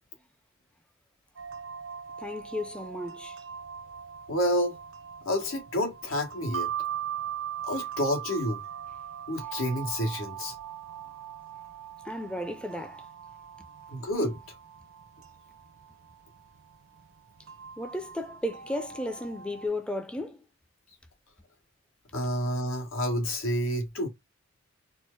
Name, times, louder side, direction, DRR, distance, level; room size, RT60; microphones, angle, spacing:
sound 1, 1.4-19.7, right 9 dB, 80° right, 0.7 m, -40 dB
voice 1, 2.2-3.4 12.0-13.1 17.8-20.4, left 1 dB, 5° left, 0.4 m, -34 dB
voice 2, 4.3-4.8 5.2-6.7 7.6-8.6 9.3-10.5 13.9-14.4 22.1-24.1, equal, 90° left, 1.4 m, -29 dB
4.4 x 2.0 x 4.5 m
head